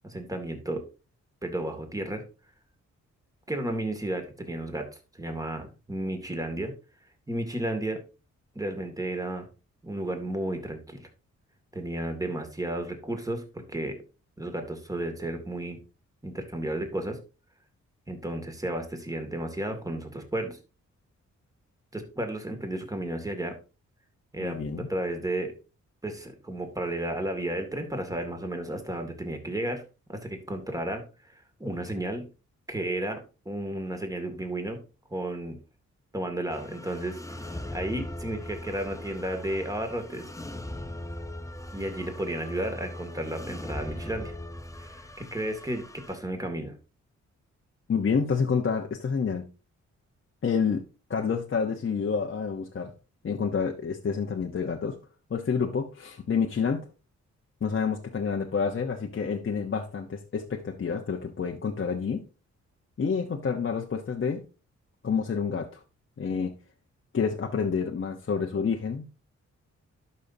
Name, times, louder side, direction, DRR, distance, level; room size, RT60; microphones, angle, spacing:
voice 1, 0.0-0.8 1.4-2.2 3.5-4.9 5.1-6.7 7.3-8.0 8.6-9.5 9.8-11.1 11.7-14.0 14.4-15.8 16.2-17.2 18.1-20.6 21.9-23.6 24.3-25.5 26.0-29.8 30.1-32.2 32.7-34.8 35.1-35.6 36.1-40.3 41.7-44.3 44.8-46.7, right 1 dB, 10° right, 5 dB, 2.2 m, -33 dB
voice 2, 24.4-24.9 47.9-49.5 50.4-50.8 51.1-52.9 53.2-55.0 55.3-56.9 57.6-62.3 63.0-64.4 65.0-65.8 66.2-66.5 67.1-69.0, left 6 dB, 45° left, 2 dB, 1.0 m, -28 dB
sound 1, 36.5-46.2, left 1 dB, 10° left, 0.7 m, -39 dB
12.0 x 5.5 x 2.7 m, 0.32 s
cardioid pair, 70°, 30 cm